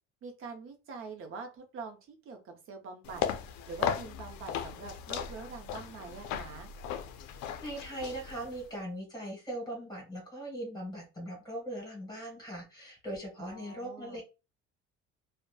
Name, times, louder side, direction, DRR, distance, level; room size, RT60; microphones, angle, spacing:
voice 1, 0.2-3.2 3.7-6.7 13.4-14.2, right 4 dB, 45° right, 4 dB, 0.6 m, -44 dB
sound 1, 3.0-8.7, left 8 dB, 80° left, 0.4 m, -37 dB
voice 2, 7.6-14.2, right 1 dB, 15° left, -1 dB, 1.4 m, -40 dB
2.7 x 2.1 x 2.2 m, 0.28 s
cardioid pair, 150°, 29 cm